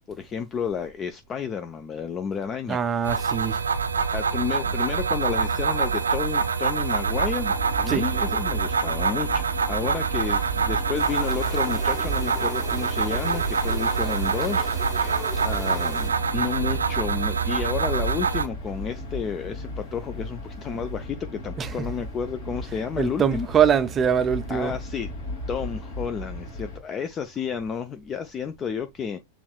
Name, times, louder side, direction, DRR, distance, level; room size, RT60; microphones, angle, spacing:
voice 1, 0.1-3.4 4.1-23.5 24.5-25.1 25.5-29.2, left 7 dB, 25° left, 0.4 m, -31 dB
voice 2, 2.7-3.6 7.9-8.1 21.6-21.9 23.0-24.7, right 8 dB, 25° right, 0.5 m, -23 dB
sound 1, 3.0-18.5, right 5 dB, 85° right, 0.4 m, -25 dB
sound 2, 7.1-26.8, left 1 dB, 60° left, 1.7 m, -37 dB
sound 3, 10.9-16.1, right 1 dB, 5° left, 1.0 m, -40 dB
7.0 x 3.1 x 2.3 m
figure-of-eight pair, 95°, 0 cm